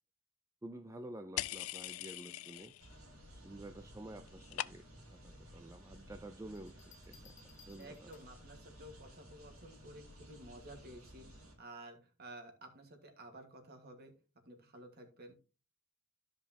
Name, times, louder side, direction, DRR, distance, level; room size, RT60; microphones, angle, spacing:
voice 1, 0.6-2.7 3.3-8.1, right 1 dB, 15° right, 7 dB, 0.4 m, -50 dB
sound 1, 1.4-3.0 3.3-3.8 4.0-5.1, left 14 dB, 75° left, 0.4 m, -42 dB
sound 2, 2.8-11.6, equal, 85° right, 2.6 m, -56 dB
sound 3, 6.6-8.5 10.1-10.5, left 6 dB, 35° left, 0.9 m, -63 dB
voice 2, 7.8-11.3 11.6-14.1 14.4-15.3, right 1 dB, 50° right, 5 dB, 1.7 m, -53 dB
13.0 x 5.2 x 2.8 m, 0.34 s
head